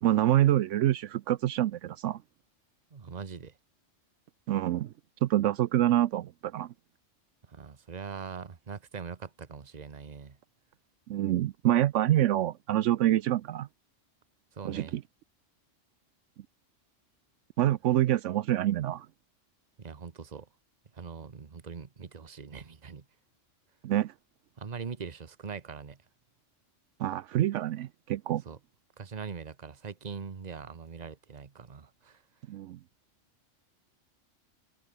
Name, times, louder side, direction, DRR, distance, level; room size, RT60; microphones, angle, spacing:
voice 1, 0.0-2.2 4.5-4.9 5.2-6.7 11.1-13.7 14.6-15.0 17.6-19.1 23.8-24.1 27.0-28.4 32.5-32.8, right 13 dB, 80° right, 0.9 m, -26 dB
voice 2, 2.9-3.5 7.5-10.4 14.5-15.0 19.8-20.5 20.9-23.0 24.6-26.0 28.5-28.6 29.0-32.2, right 5 dB, 35° right, 1.2 m, -42 dB
omnidirectional pair, 1.3 m